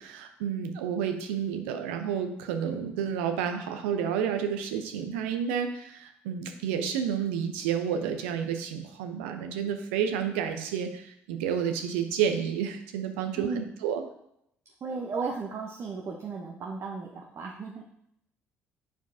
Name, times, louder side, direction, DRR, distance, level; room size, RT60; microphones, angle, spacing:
voice 1, 0.0-14.0, right 8 dB, 70° right, 6 dB, 0.7 m, -30 dB
voice 2, 13.4-13.7 14.8-17.8, right 4 dB, 45° right, 0 dB, 0.8 m, -35 dB
9.0 x 4.6 x 2.7 m, 0.75 s
figure-of-eight pair, 50°, 7 cm